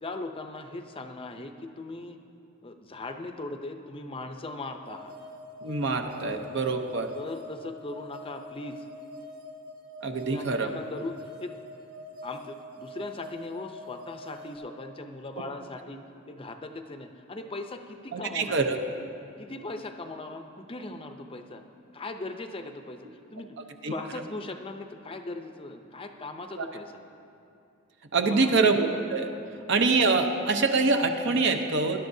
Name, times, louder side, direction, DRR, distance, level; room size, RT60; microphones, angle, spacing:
voice 1, 0.0-2.2 2.6-5.2 7.1-8.9 10.2-11.6 12.2-18.6 19.4-21.6 21.9-23.6 23.8-26.9 28.2-28.6 29.4-29.5, left 2 dB, 25° left, 6 dB, 0.6 m, -39 dB
sound 1, 4.8-14.6, left 1 dB, 40° right, 1.5 m, -44 dB
voice 2, 5.6-7.1 10.0-10.7 18.1-18.8 23.8-23.9 26.6-26.7 28.1-29.3 29.7-32.0, right 3 dB, 60° right, 5 dB, 0.8 m, -25 dB
20.0 x 11.0 x 2.7 m, 2.6 s
head